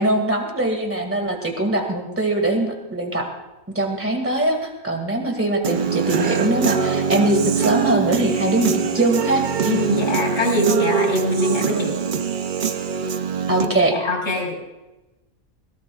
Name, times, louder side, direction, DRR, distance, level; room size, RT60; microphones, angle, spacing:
voice 1, 0.0-3.3 3.7-9.5 13.5-13.9, right 1 dB, 10° right, 3 dB, 2.0 m, -22 dB
Human voice / Guitar, 5.6-13.7, right 6 dB, 50° right, 0.7 m, -23 dB
voice 2, 9.6-12.0 13.6-14.6, left 1 dB, 60° left, 0 dB, 4.8 m, -23 dB
20.5 x 17.0 x 2.4 m, 1.0 s
omnidirectional pair, 1.5 m